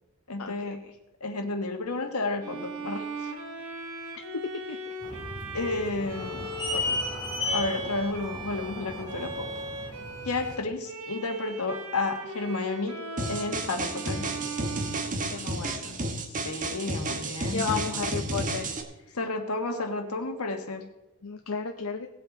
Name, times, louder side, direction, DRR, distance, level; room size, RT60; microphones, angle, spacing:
voice 1, 0.3-0.8 1.2-3.1 5.5-7.0 7.5-9.5 10.2-14.3 16.4-17.8 19.1-20.9, left 2 dB, 85° left, 5 dB, 1.6 m, -32 dB
Bowed string instrument, 2.4-15.9, right 2 dB, 70° right, 1.4 m, -38 dB
sound 1, 5.0-10.5, left 2 dB, 20° left, 3.5 m, -35 dB
sound 2, 13.2-18.8, right 2 dB, 35° right, 1.2 m, -32 dB
voice 2, 15.3-16.0 17.5-18.7 21.2-22.1, left 6 dB, 70° left, 4 dB, 0.7 m, -33 dB
18.5 x 7.9 x 4.1 m, 0.95 s
head